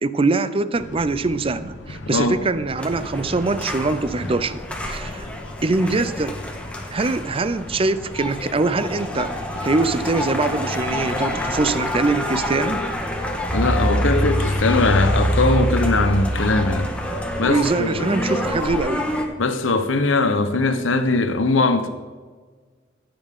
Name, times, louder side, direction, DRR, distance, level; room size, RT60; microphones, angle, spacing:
voice 1, 0.0-5.3 5.6-6.4 6.9-9.3 9.6-12.8 17.4-19.1, right 3 dB, 30° right, 0.5 m, -23 dB
sound 1, 0.7-18.8, left 1 dB, 70° left, 1.3 m, -39 dB
voice 2, 2.1-2.4 13.5-16.9 17.4-18.1 19.4-21.9, left 3 dB, 90° left, 0.9 m, -20 dB
sound 2, 2.8-19.3, equal, 5° left, 1.4 m, -26 dB
14.5 x 8.8 x 3.7 m
head